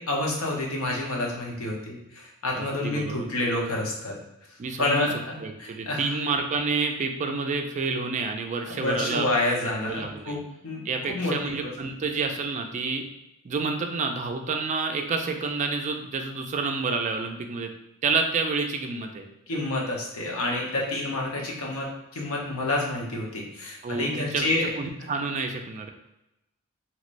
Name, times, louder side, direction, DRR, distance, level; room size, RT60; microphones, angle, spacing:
voice 1, 0.0-4.2 4.8-6.2 8.7-11.7 19.5-24.7, left 2 dB, 85° left, -1 dB, 0.9 m, -29 dB
voice 2, 2.5-3.3 4.6-5.1 5.4-9.3 9.8-10.4 10.8-13.0 13.4-17.7 18.0-19.3 23.8-24.5 24.8-25.9, right 4 dB, 35° right, 4 dB, 0.3 m, -29 dB
3.1 x 2.9 x 2.5 m, 0.90 s
head